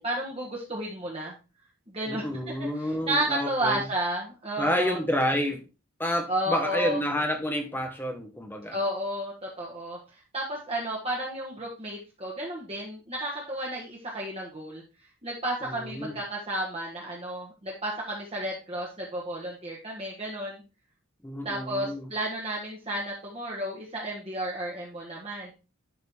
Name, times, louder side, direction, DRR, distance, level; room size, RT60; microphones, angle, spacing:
voice 1, 0.0-1.4 1.9-2.2 2.6-5.0 6.3-7.0 8.7-14.8 15.2-20.6 21.4-25.5, right 1 dB, 30° right, -3 dB, 1.4 m, -32 dB
voice 2, 2.1-3.8 4.6-5.6 6.0-8.8 15.6-16.2 21.2-22.1, equal, 10° left, 4 dB, 1.2 m, -29 dB
11.0 x 4.0 x 3.5 m, 0.31 s
head